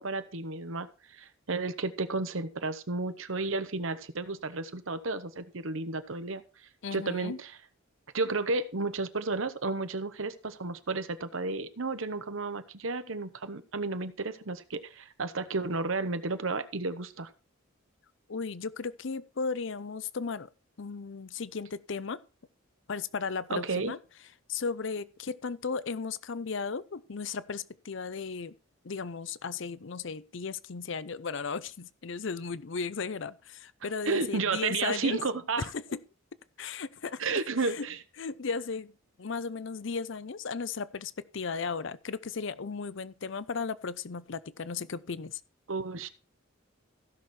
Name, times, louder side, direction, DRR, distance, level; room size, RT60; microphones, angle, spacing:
voice 1, 0.0-6.4 6.9-7.5 8.1-17.3 23.5-23.9 34.1-35.7 37.2-38.0 45.7-46.1, right 3 dB, 70° right, 1.0 m, -32 dB
voice 2, 6.8-7.4 18.3-20.5 20.8-22.2 22.9-24.0 24.5-28.6 28.8-35.2 35.6-36.0 36.6-37.9 38.2-38.9 39.2-45.4, left 5 dB, 60° left, 0.6 m, -35 dB
15.5 x 6.4 x 4.3 m
head